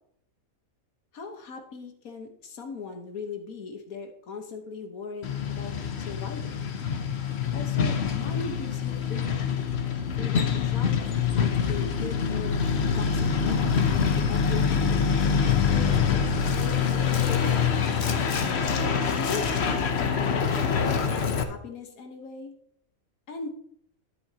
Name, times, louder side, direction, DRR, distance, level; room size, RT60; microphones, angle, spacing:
voice 1, 1.1-6.6 7.5-9.5 10.2-11.2 11.7-12.6 13.0-13.8 14.2-15.2 15.7-17.6 18.7-19.4 19.7-22.5 23.3-23.5, left 4 dB, 80° left, 4 dB, 1.7 m, -39 dB
Truck, 5.2-21.4, left 6 dB, 55° left, 1.0 m, -25 dB
11.0 x 9.7 x 2.8 m, 0.67 s
omnidirectional pair, 1.5 m